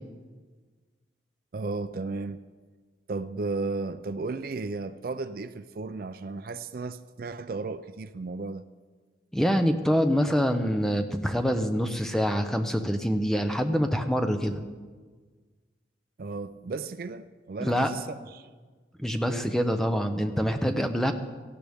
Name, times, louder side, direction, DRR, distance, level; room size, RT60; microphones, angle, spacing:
voice 1, 1.5-2.4 3.1-8.6 16.2-18.5 19.3-19.5, right 3 dB, 50° right, 0.4 m, -34 dB
voice 2, 9.3-14.6 17.6-17.9 19.0-21.1, equal, ahead, 0.7 m, -25 dB
18.0 x 14.0 x 3.5 m
head